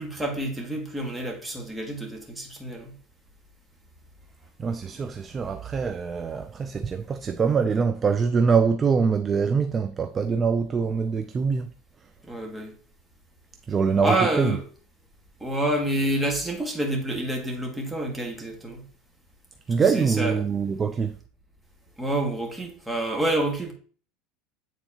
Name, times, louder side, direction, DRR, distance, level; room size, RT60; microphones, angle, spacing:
voice 1, 0.0-2.9 12.2-12.7 14.0-14.6 15.4-18.8 19.9-20.3 22.0-23.7, right 1 dB, 5° right, 1.6 m, -28 dB
voice 2, 4.6-11.7 12.0-12.1 13.7-14.6 19.7-21.2, right 5 dB, 25° right, 0.4 m, -24 dB
9.1 x 4.0 x 2.9 m
supercardioid pair, 135°, 0 cm